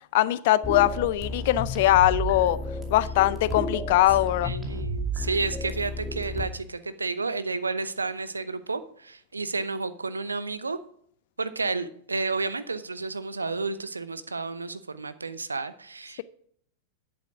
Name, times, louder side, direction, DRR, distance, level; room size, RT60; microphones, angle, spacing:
voice 1, 0.1-2.6 2.9-4.5, left 15 dB, 50° left, 0.5 m, -21 dB
sound 1, 0.6-6.4, equal, 10° right, 2.4 m, -32 dB
voice 2, 4.4-10.8 11.4-16.2, right 3 dB, 80° right, 0.7 m, -31 dB
10.5 x 8.0 x 4.9 m
figure-of-eight pair, 90°, 0 cm